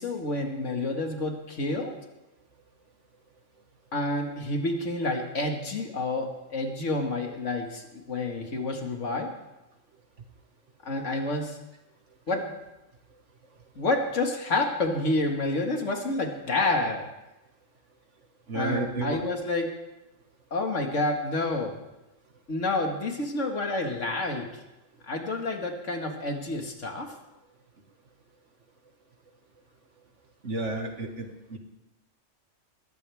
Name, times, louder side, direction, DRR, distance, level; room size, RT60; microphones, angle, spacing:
voice 1, 0.0-1.9 3.9-9.3 10.8-11.6 12.3-12.6 13.8-17.1 18.5-19.7 20.5-21.8 22.5-24.6 25.1-27.1, left 2 dB, 70° left, 3 dB, 2.3 m, -29 dB
voice 2, 18.5-19.2 30.4-31.6, right 3 dB, 65° right, 4 dB, 2.1 m, -32 dB
21.0 x 15.5 x 3.5 m, 0.97 s
omnidirectional pair, 1.3 m